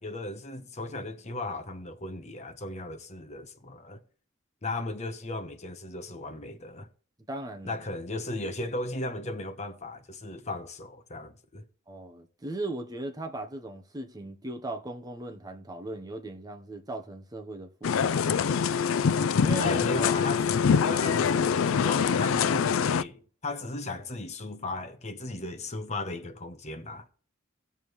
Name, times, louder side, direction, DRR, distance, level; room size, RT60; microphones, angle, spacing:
voice 1, 0.0-4.0 4.6-6.9 7.6-11.6 19.6-20.5 20.8-27.1, left 2 dB, 35° left, 1.0 m, -36 dB
voice 2, 7.3-7.8 11.9-18.3 19.4-19.7 21.0-21.1, right 2 dB, 20° right, 1.0 m, -38 dB
sound 1, 17.8-23.0, left 6 dB, 75° left, 0.4 m, -24 dB
18.0 x 7.2 x 3.2 m
head